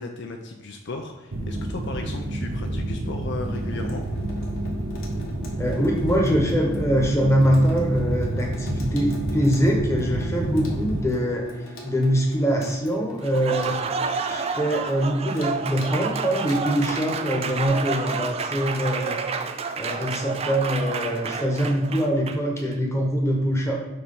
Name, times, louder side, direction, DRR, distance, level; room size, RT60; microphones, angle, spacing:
voice 1, 0.0-4.1, left 3 dB, 55° left, 4 dB, 0.5 m, -35 dB
sound 1, 1.3-11.0, right 1 dB, 70° right, 0.7 m, -29 dB
Water tap faucet / Sink (filling or washing), 3.4-17.7, left 1 dB, 75° left, 1.3 m, -43 dB
voice 2, 5.6-19.2 19.8-23.7, equal, 15° left, -1 dB, 1.1 m, -23 dB
Applause, 13.2-22.6, right 5 dB, 30° right, 0.3 m, -30 dB
6.6 x 3.1 x 5.4 m, 1.1 s
head